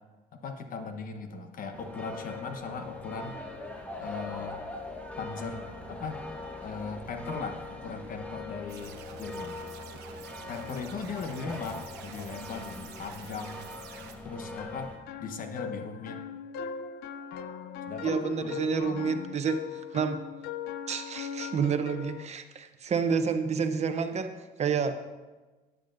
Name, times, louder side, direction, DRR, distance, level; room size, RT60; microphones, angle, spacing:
voice 1, 0.4-3.4 4.0-4.6 5.2-6.2 6.6-9.6 10.5-13.6 14.2-14.9 15.2-16.2 17.9-18.6, left 4 dB, 55° left, 6 dB, 1.1 m, -38 dB
sound 1, 1.7-15.0, left 2 dB, 10° left, 1.2 m, -42 dB
sound 2, 8.7-14.2, right 8 dB, 80° right, 1.0 m, -49 dB
sound 3, 14.6-22.3, left 7 dB, 75° left, 0.5 m, -39 dB
voice 2, 18.0-20.2 20.9-25.1, right 6 dB, 40° right, 8 dB, 0.7 m, -29 dB
13.0 x 9.2 x 2.6 m, 1.2 s
cardioid pair, 110°, 17 cm